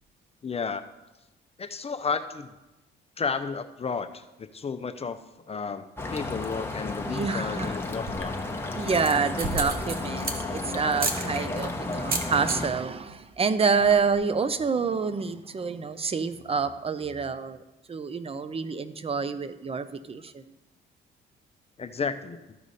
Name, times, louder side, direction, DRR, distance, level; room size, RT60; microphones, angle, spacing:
voice 1, 0.4-0.8 1.6-2.5 3.2-5.2 5.5-5.8 6.1-8.3 21.8-22.4, left 5 dB, 30° left, 9 dB, 0.5 m, -32 dB
sound 1, 6.0-12.7, left 2 dB, 10° left, 1.0 m, -33 dB
voice 2, 7.0-7.7 8.7-17.6 17.9-20.4, right 5 dB, 30° right, 12 dB, 0.6 m, -27 dB
sound 2, 8.0-8.3 8.8-10.6 11.0-11.2 11.9-12.6 12.9-13.2 13.4-13.5 13.7-14.2, right 3 dB, 50° right, 1.2 m, -32 dB
13.5 x 4.9 x 4.1 m, 1.0 s
cardioid pair, 90°, 20 cm